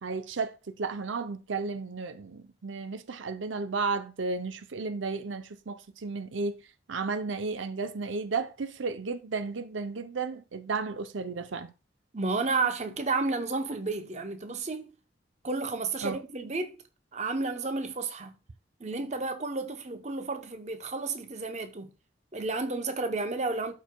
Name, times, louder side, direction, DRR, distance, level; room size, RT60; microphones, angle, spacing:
voice 1, 0.0-6.6 6.9-11.7 16.0-16.2, right 4 dB, 80° right, 0.6 m, -33 dB
voice 2, 12.1-14.9 15.4-16.8 17.1-18.3 18.8-21.9 22.3-23.7, right 3 dB, 35° right, 0.8 m, -31 dB
12.5 x 4.7 x 2.3 m
head